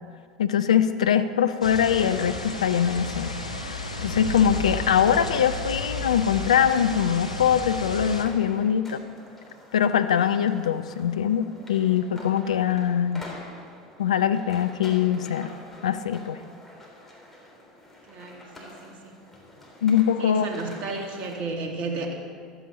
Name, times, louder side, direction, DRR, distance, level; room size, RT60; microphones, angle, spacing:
voice 1, 0.4-3.4 3.7-9.0 9.7-13.2 14.0-15.6 15.8-16.4 19.8-20.5, left 8 dB, 75° left, 10 dB, 0.5 m, -23 dB
sound 1, 1.6-8.2, left 3 dB, 90° left, 1.0 m, -33 dB
sound 2, 7.9-21.4, left 1 dB, 5° left, 3.3 m, -47 dB
voice 2, 18.1-19.2 20.2-22.2, right 3 dB, 45° right, 2 dB, 1.9 m, -33 dB
14.5 x 12.0 x 4.1 m, 2.1 s
figure-of-eight pair, 75°, 4 cm